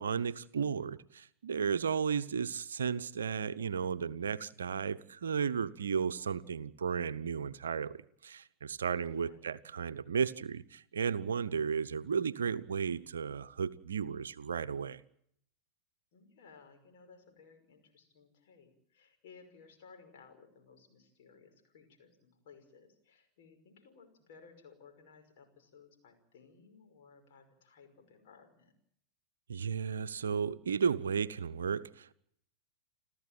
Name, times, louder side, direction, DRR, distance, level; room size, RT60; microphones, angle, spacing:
voice 1, 0.0-8.0 8.2-15.0 29.5-32.1, right 6 dB, 70° right, 13 dB, 0.8 m, -34 dB
voice 2, 9.0-9.4 16.1-28.7, left 5 dB, 55° left, 5 dB, 5.6 m, -59 dB
30.0 x 13.0 x 9.1 m, 0.71 s
figure-of-eight pair, 90°, 0 cm